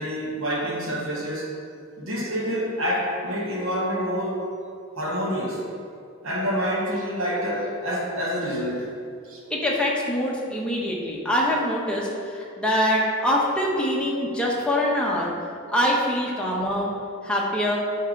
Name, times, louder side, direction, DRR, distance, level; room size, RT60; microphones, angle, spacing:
voice 1, 0.0-1.6 2.0-4.4 5.0-5.6 6.2-8.9 9.2-9.4 16.3-16.4, equal, 75° right, -4 dB, 1.4 m, -27 dB
voice 2, 9.5-15.3 15.7-16.9 17.2-17.8, left 1 dB, 5° left, -4 dB, 1.1 m, -24 dB
9.9 x 4.5 x 3.8 m, 2.4 s
head